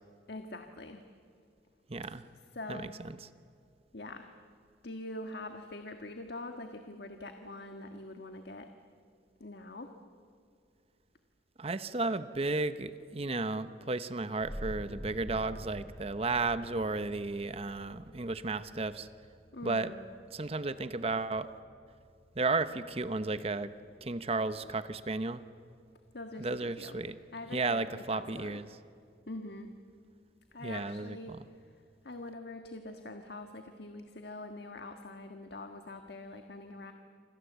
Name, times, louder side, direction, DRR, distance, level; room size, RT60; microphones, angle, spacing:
voice 1, 0.3-1.0 2.5-2.9 3.9-4.3 4.8-8.7 9.4-9.9 19.5-20.0 26.1-26.9 27.3-28.6 29.3-29.7 30.5-31.3 32.1-36.9, left 2 dB, 65° left, 5 dB, 1.6 m, -44 dB
voice 2, 1.9-2.2 2.7-3.3 11.6-19.1 19.6-19.9 20.3-21.5 22.4-23.7 24.0-25.4 26.4-27.1 27.5-28.7 30.6-31.4, right 3 dB, 35° right, 12 dB, 0.8 m, -33 dB
sound 1, 14.4-25.7, equal, 5° right, 5.6 m, -49 dB
28.0 x 26.0 x 8.1 m, 2.3 s
head